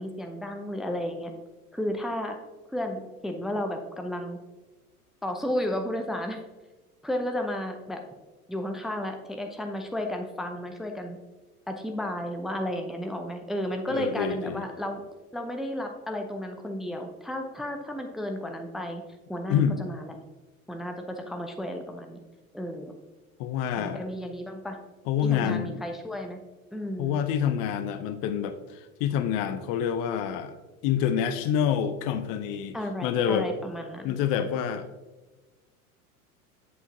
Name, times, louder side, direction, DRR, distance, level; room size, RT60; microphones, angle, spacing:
voice 1, 0.0-1.3 1.7-2.4 2.7-4.4 5.2-6.4 7.0-8.0 8.5-11.2 11.7-15.0 15.3-19.0 19.3-20.2 20.7-22.2 22.5-22.9 23.7-24.8 25.2-26.4 26.7-27.2 32.7-34.2, left 1 dB, ahead, 4 dB, 0.6 m, -33 dB
voice 2, 13.9-14.6 19.5-19.8 23.4-24.0 25.1-25.8 27.0-30.5 30.8-32.8 33.0-33.5 34.0-34.9, left 8 dB, 45° left, 10 dB, 0.7 m, -27 dB
8.0 x 7.4 x 2.7 m, 1.2 s
figure-of-eight pair, 75°, 43 cm